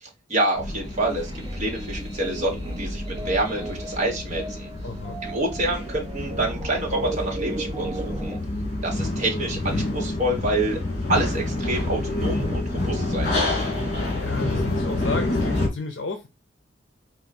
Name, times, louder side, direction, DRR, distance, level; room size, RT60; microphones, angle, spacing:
voice 1, 0.0-4.7 5.2-8.4 8.8-10.8 11.1-13.6, right 1 dB, 40° right, 1.3 m, -27 dB
sound 1, 0.5-15.7, left 2 dB, 40° left, 2.0 m, -28 dB
sound 2, 0.8-8.4, right 2 dB, 25° right, 0.5 m, -36 dB
voice 2, 4.8-5.2 13.9-16.3, left 3 dB, 65° left, 0.6 m, -32 dB
4.5 x 2.4 x 4.1 m
head